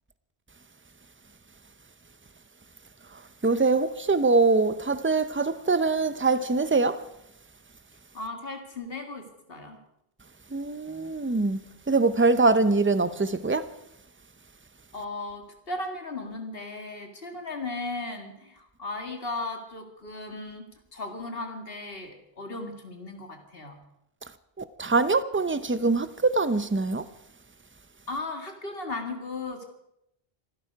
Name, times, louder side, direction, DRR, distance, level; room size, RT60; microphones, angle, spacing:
voice 1, 3.4-7.1 10.5-11.6 11.9-13.7 24.6-27.0, right 3 dB, 15° right, 0.5 m, -23 dB
voice 2, 8.1-9.8 14.9-23.8 28.1-29.6, left 2 dB, 65° left, 2.4 m, -36 dB
25.5 x 12.0 x 4.7 m
omnidirectional pair, 1.0 m